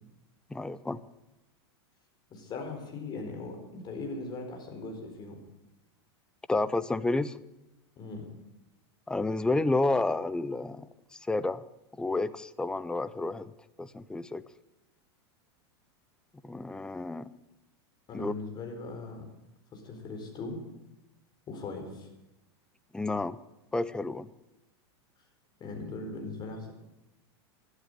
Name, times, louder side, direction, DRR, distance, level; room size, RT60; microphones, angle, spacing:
voice 1, 0.5-1.0 6.5-7.3 9.1-11.6 12.0-13.5 13.8-14.4 16.4-17.3 18.1-18.3 22.9-23.4 23.7-24.3, left 2 dB, 5° left, 16 dB, 0.6 m, -30 dB
voice 2, 2.3-5.4 8.0-8.3 18.1-19.3 19.7-20.6 21.5-22.1 25.6-26.7, left 3 dB, 30° left, 4 dB, 4.3 m, -39 dB
12.5 x 11.5 x 9.1 m, 0.93 s
supercardioid pair, 125°, 14 cm